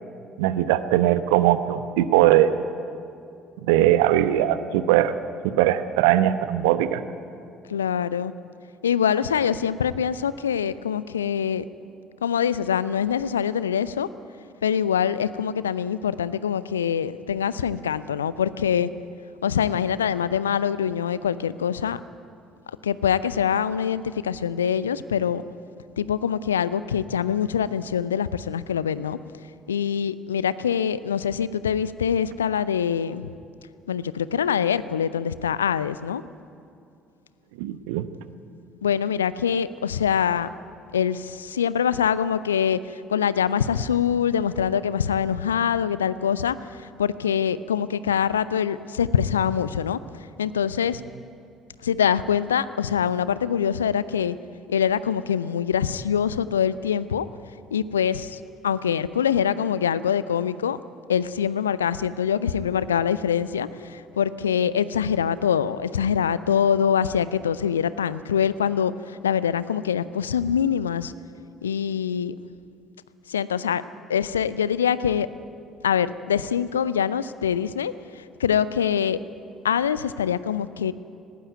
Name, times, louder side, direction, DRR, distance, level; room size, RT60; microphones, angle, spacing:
voice 1, 0.4-2.5 3.7-5.1 5.4-7.0 37.6-38.1, right 13 dB, 65° right, 13 dB, 0.9 m, -20 dB
voice 2, 7.7-8.3 8.8-11.6 12.2-14.1 14.6-18.9 19.4-22.0 22.8-25.4 26.0-29.2 29.7-33.3 33.9-36.2 38.8-40.5 40.9-50.0 50.4-51.0 51.8-54.4 54.7-57.3 57.7-60.8 61.1-71.1 71.6-72.3 73.3-73.8 74.1-75.3 75.8-79.2 79.6-80.9, left 8 dB, 80° left, 16 dB, 0.5 m, -24 dB
19.0 x 18.0 x 9.3 m, 2.4 s
figure-of-eight pair, 50°, 0 cm